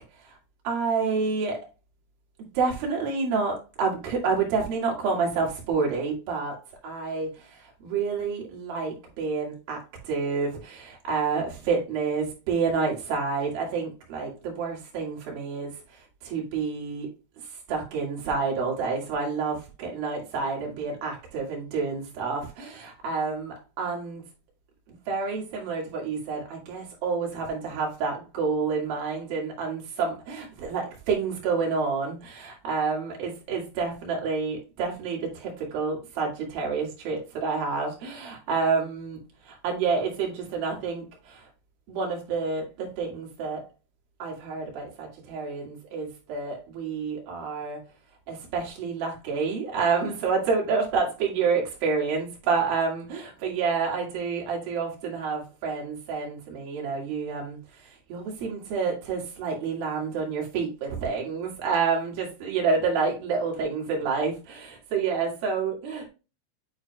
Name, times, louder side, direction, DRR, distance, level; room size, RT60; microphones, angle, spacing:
voice 1, 0.6-1.6 2.5-6.6 6.8-7.3 7.8-15.7 16.2-17.1 17.7-24.2 25.1-39.2 39.5-41.4 41.9-43.6 44.2-47.8 48.3-57.6 58.1-66.1, right 5 dB, 55° right, 3.3 m, -28 dB
9.6 x 4.4 x 2.2 m
omnidirectional pair, 5.8 m